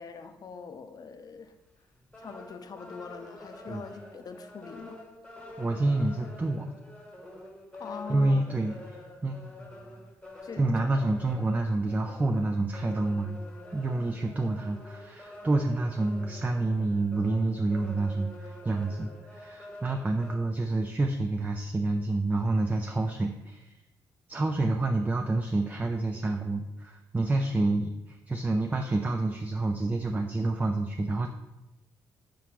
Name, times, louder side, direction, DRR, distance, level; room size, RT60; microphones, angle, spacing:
voice 1, 0.0-1.5 2.2-5.0 7.7-8.4 10.4-10.7, left 5 dB, 50° left, 8 dB, 0.4 m, -42 dB
sound 1, 1.5-1.7 2.0-20.4, left 1 dB, 10° left, 1.0 m, -47 dB
voice 2, 5.6-6.7 8.1-8.7 9.2-9.6 10.6-13.4 13.7-23.8 24.3-31.3, right 2 dB, 20° right, 4 dB, 0.3 m, -28 dB
4.7 x 3.6 x 2.9 m, 0.96 s
supercardioid pair, 60°, 9 cm